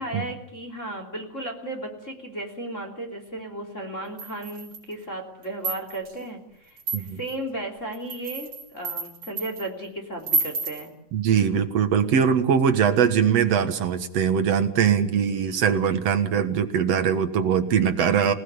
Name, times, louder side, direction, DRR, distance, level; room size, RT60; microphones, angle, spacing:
voice 1, 0.0-10.9 15.3-15.7, right 1 dB, 20° left, 3 dB, 3.1 m, -35 dB
sound 1, 4.2-4.9 5.4-6.1 6.8-7.3 7.9-9.7 10.2-10.9, right 3 dB, 35° right, 6.5 m, -30 dB
voice 2, 11.1-18.3, right 7 dB, 55° right, 8 dB, 1.9 m, -21 dB
28.0 x 18.0 x 8.4 m, 0.74 s
omnidirectional pair, 4.5 m